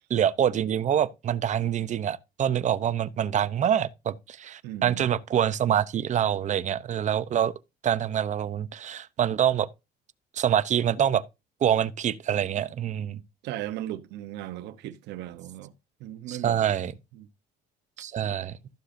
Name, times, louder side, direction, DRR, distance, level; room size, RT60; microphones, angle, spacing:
voice 1, 0.1-7.5 7.8-9.7 10.3-11.2 11.6-13.2 16.3-16.9 18.0-18.6, right 9 dB, 45° right, 0.7 m, -25 dB
voice 2, 4.6-5.1 13.4-15.7 16.0-16.7 17.1-17.3, right 13 dB, 85° right, 0.9 m, -37 dB
14.5 x 6.5 x 2.6 m
cardioid pair, 110°, 17 cm